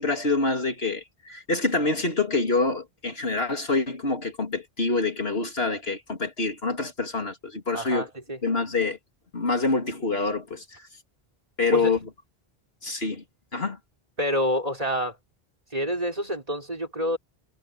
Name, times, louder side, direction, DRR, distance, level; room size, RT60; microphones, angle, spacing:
voice 1, 0.0-8.1 8.4-9.0 9.3-10.8 11.6-12.0 12.8-13.2 13.5-13.8, left 3 dB, 75° left, 3.4 m, -26 dB
voice 2, 7.7-8.4 11.7-12.0 14.2-15.2 15.7-17.2, equal, 40° right, 4.3 m, -27 dB
omnidirectional pair, 1.0 m